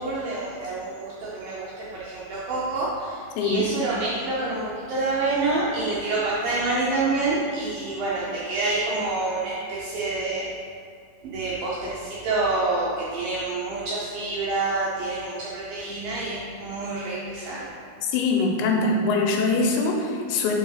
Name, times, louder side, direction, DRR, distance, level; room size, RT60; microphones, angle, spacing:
voice 1, 0.0-4.6 4.9-10.5 11.2-17.7, right 3 dB, 75° right, -7 dB, 2.1 m, -27 dB
voice 2, 3.4-3.7 18.0-20.5, left 3 dB, 85° left, 1 dB, 2.9 m, -23 dB
5.4 x 5.2 x 5.6 m, 2.3 s
omnidirectional pair, 5.2 m